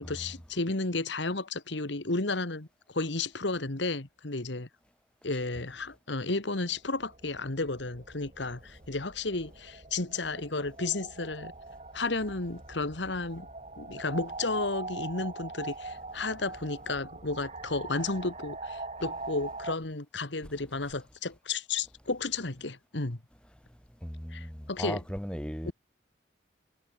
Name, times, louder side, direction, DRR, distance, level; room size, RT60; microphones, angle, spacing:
voice 1, 0.0-4.7 5.2-11.5 11.9-13.5 13.8-23.2 24.3-25.0 25.6-25.7, left 3 dB, 75° left, 1.8 m, -33 dB
sound 1, 6.5-19.8, right 3 dB, 35° right, 2.8 m, -42 dB
voice 2, 24.0-25.7, equal, 5° left, 3.1 m, -37 dB
head